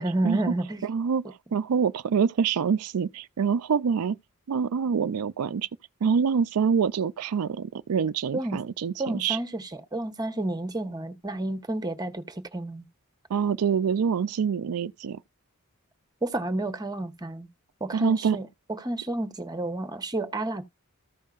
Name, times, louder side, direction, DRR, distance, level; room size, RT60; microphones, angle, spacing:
voice 1, 0.0-0.8 8.3-8.6 9.0-12.8 16.2-17.5 17.8-20.6, right 2 dB, 15° right, 1.1 m, -30 dB
voice 2, 0.8-4.2 4.5-5.7 6.0-9.4 13.3-15.2 17.9-18.4, right 6 dB, 80° right, 0.4 m, -25 dB
14.5 x 5.5 x 2.5 m
head